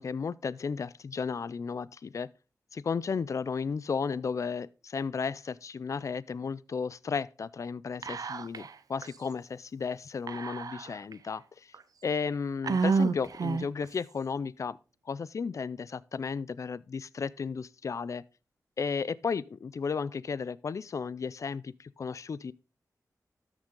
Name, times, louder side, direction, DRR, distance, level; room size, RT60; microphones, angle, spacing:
voice 1, 0.0-2.3 2.7-11.7 12.0-14.8 15.1-18.2 18.8-22.5, left 5 dB, 55° left, 0.4 m, -34 dB
Whispering, 8.0-8.7 9.0-9.1 10.3-11.1 11.7-11.8 12.6-13.9, right 4 dB, 65° right, 0.7 m, -29 dB
13.0 x 6.1 x 3.8 m
wide cardioid pair, 95°, 7 cm